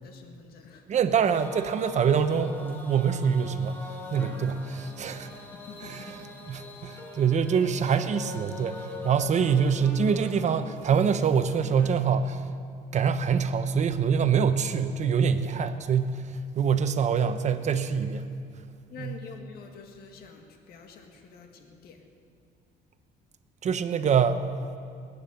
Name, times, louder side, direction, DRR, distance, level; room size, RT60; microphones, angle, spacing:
voice 1, 0.0-1.0 5.5-6.1 18.9-22.0, left 5 dB, 65° left, 4 dB, 1.8 m, -47 dB
voice 2, 0.9-3.8 4.1-5.3 5.8-6.1 6.5-12.4 12.9-16.2 16.5-18.3 19.0-19.2 23.6-24.4, right 6 dB, 45° right, 10 dB, 0.9 m, -25 dB
sound 1, 1.3-11.9, left 2 dB, 10° left, 2.1 m, -43 dB
19.5 x 9.7 x 7.1 m, 2.3 s
cardioid pair, 110°, 17 cm